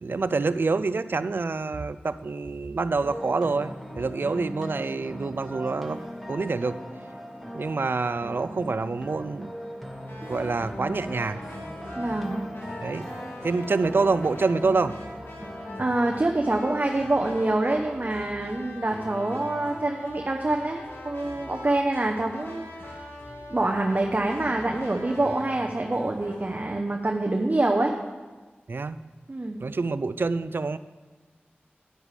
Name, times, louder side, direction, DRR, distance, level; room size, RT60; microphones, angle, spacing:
voice 1, 0.0-6.0 6.3-6.8 7.5-9.5 10.3-11.4 12.8-13.0 13.4-14.9 28.7-29.0 29.6-30.8, right 3 dB, 60° right, 13 dB, 0.3 m, -26 dB
sound 1, 3.0-15.8, equal, ahead, 1.7 m, -39 dB
sound 2, 10.1-26.6, left 1 dB, 70° left, 1.3 m, -42 dB
voice 2, 12.0-12.4 15.8-22.9 23.5-27.9 29.3-29.6, right 2 dB, 45° right, 2 dB, 0.7 m, -26 dB
10.0 x 8.9 x 3.3 m, 1.3 s
cardioid pair, 40°, 4 cm